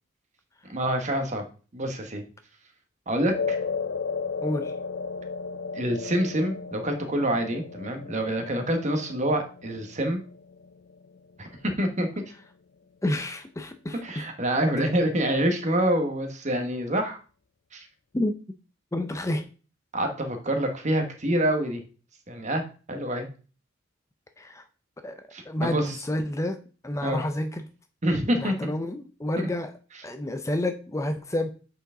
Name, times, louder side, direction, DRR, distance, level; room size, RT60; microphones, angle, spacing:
voice 1, 0.7-1.4 1.7-2.2 3.1-3.6 5.7-10.2 11.4-12.1 14.0-17.2 17.7-17.9 19.9-21.8 22.3-23.3 25.3-25.9 27.0-27.2 28.0-28.7, right 1 dB, 40° right, 5 dB, 1.3 m, -26 dB
sound 1, 3.3-11.8, left 5 dB, 70° left, 0.5 m, -35 dB
voice 2, 4.4-4.7 13.0-14.3 18.1-18.3 18.9-19.4 24.4-24.7 25.0-26.6 26.8-27.7 28.3-29.7 30.0-31.5, left 1 dB, 15° left, 8 dB, 0.5 m, -29 dB
8.1 x 4.6 x 3.7 m, 0.37 s
head